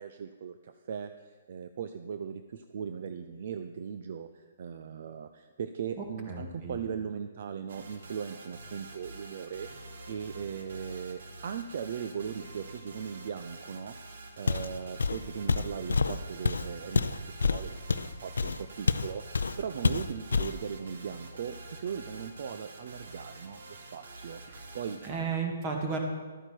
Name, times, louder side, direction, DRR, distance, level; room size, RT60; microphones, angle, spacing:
voice 1, 0.0-14.0 14.4-25.0, right 7 dB, 50° right, 9 dB, 0.5 m, -39 dB
voice 2, 6.0-6.8 24.5-24.6 25.0-26.0, right 5 dB, 25° right, 2 dB, 1.9 m, -34 dB
sound 1, 7.7-25.1, right 2 dB, 70° right, 1.6 m, -47 dB
Walk footsteps, 14.5-14.7 15.0-19.1 19.3-19.6 19.8-20.6, left 4 dB, 90° left, 0.5 m, -27 dB
12.0 x 8.8 x 4.5 m, 1.5 s
hypercardioid pair, 155°, 0 cm